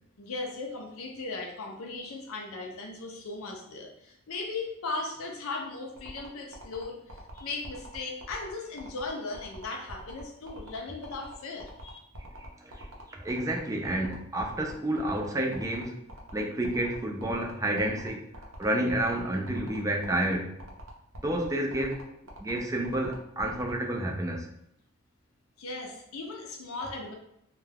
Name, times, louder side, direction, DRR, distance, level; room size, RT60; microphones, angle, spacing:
voice 1, 0.2-12.0 25.6-27.1, left 3 dB, 80° left, 1 dB, 0.5 m, -37 dB
sound 1, 6.0-23.7, right 1 dB, 70° right, 0.6 m, -46 dB
voice 2, 12.4-15.9 16.3-18.3 18.6-20.6 21.2-22.0 22.4-24.5, right 1 dB, 15° right, 1 dB, 0.4 m, -30 dB
2.3 x 2.2 x 3.2 m, 0.77 s
head